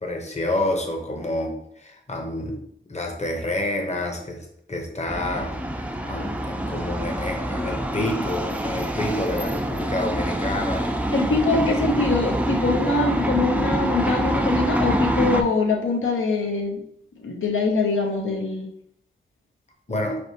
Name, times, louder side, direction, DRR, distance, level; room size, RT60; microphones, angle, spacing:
voice 1, 0.0-2.6 2.9-10.9 19.9-20.2, left 1 dB, 35° left, 2 dB, 0.8 m, -28 dB
sound 1, 5.1-15.4, right 1 dB, 5° right, 0.4 m, -25 dB
voice 2, 11.1-16.8 17.2-18.7, left 3 dB, 80° left, 1 dB, 0.6 m, -23 dB
4.0 x 3.4 x 2.8 m, 0.72 s
wide cardioid pair, 70°, 20 cm